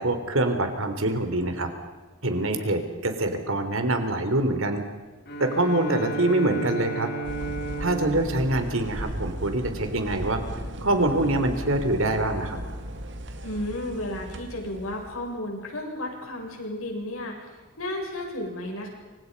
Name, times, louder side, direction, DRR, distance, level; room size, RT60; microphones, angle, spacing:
voice 1, 0.0-1.7 2.2-4.8 5.4-7.1 7.8-10.4 10.8-12.6, right 1 dB, 75° right, 7 dB, 3.8 m, -25 dB
Bowed string instrument, 5.3-9.9, right 3 dB, 50° left, 3.0 m, -34 dB
sound 1, 7.2-15.3, right 1 dB, 55° right, 2.2 m, -36 dB
voice 2, 13.4-17.4 17.8-18.9, left 1 dB, 80° left, 1 dB, 7.5 m, -33 dB
28.5 x 26.0 x 5.5 m, 1.3 s
head